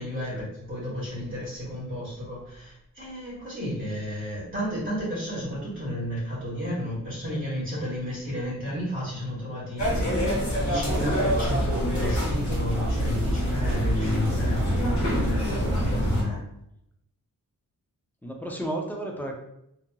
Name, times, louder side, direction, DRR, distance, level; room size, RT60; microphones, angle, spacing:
voice 1, 0.0-16.4, equal, 25° right, -7 dB, 1.0 m, -33 dB
sound 1, 9.8-16.2, equal, 55° left, 1.2 m, -25 dB
voice 2, 18.2-19.3, right 1 dB, 5° left, 1 dB, 0.3 m, -33 dB
2.8 x 2.5 x 2.2 m, 0.79 s
wide cardioid pair, 125°, 35 cm